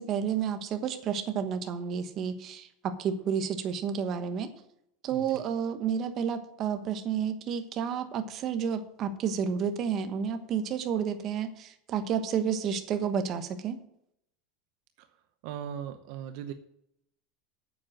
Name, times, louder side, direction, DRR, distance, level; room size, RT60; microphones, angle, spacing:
voice 1, 0.0-4.5 5.0-13.8, right 7 dB, 35° right, 8 dB, 1.1 m, -31 dB
voice 2, 5.1-5.4 15.0-15.2 15.4-16.5, right 9 dB, 60° right, 9 dB, 0.8 m, -39 dB
9.4 x 7.8 x 7.6 m, 0.75 s
supercardioid pair, 160°, 0 cm